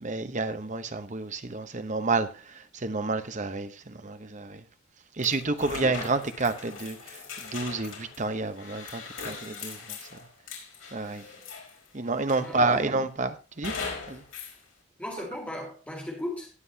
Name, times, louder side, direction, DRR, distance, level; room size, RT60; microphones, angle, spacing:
voice 1, 0.0-2.3 2.7-4.6 5.2-10.0 10.9-11.2 11.9-13.7 14.1-14.2, right 3 dB, 35° right, 10 dB, 0.9 m, -29 dB
sound 1, 5.2-11.9 12.3-12.9 13.6-14.6, left 5 dB, 85° left, 4.7 m, -40 dB
voice 2, 12.4-12.8 15.0-16.5, left 1 dB, 5° left, -1 dB, 3.9 m, -37 dB
19.5 x 7.8 x 2.8 m, 0.30 s
head